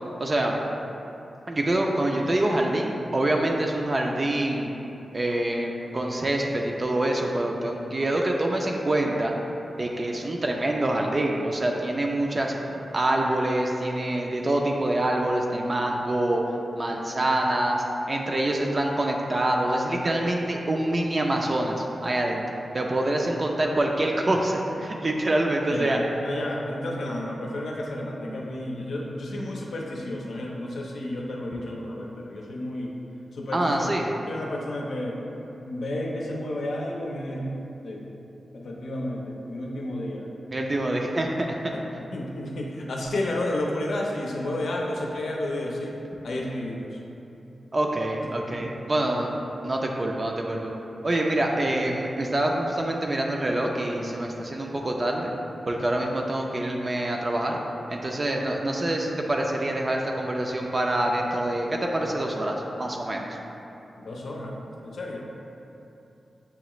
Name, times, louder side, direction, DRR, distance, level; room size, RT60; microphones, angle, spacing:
voice 1, 0.2-0.6 1.5-4.7 5.1-9.3 9.8-16.4 16.8-22.4 22.7-26.0 33.5-34.1 40.5-41.8 47.7-50.7 51.0-55.3 55.7-57.6 57.9-63.3, right 1 dB, 35° right, 0 dB, 0.4 m, -26 dB
voice 2, 25.7-32.9 33.3-33.9 34.3-35.2 35.7-37.5 37.8-38.0 38.5-40.3 41.7-45.9 46.2-47.0 64.0-64.5 64.8-65.3, left 1 dB, 80° left, -2 dB, 0.6 m, -31 dB
6.8 x 2.4 x 3.0 m, 2.9 s
wide cardioid pair, 85°, 0 cm